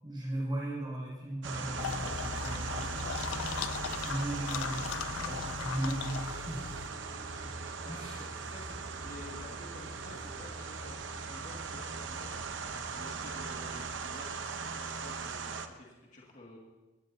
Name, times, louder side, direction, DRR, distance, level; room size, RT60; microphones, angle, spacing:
voice 1, 0.0-6.6 7.9-8.2, right 1 dB, 25° right, -4 dB, 6.2 m, -37 dB
sound 1, 1.4-14.0, equal, 40° right, 1.4 m, -47 dB
sound 2, 1.4-15.7, right 5 dB, 60° right, 0.9 m, -39 dB
sound 3, 1.8-6.9, left 9 dB, 85° left, 0.4 m, -39 dB
voice 2, 7.3-12.3 12.9-16.6, left 1 dB, 35° left, -4 dB, 2.2 m, -51 dB
22.5 x 16.5 x 2.8 m, 1.2 s
head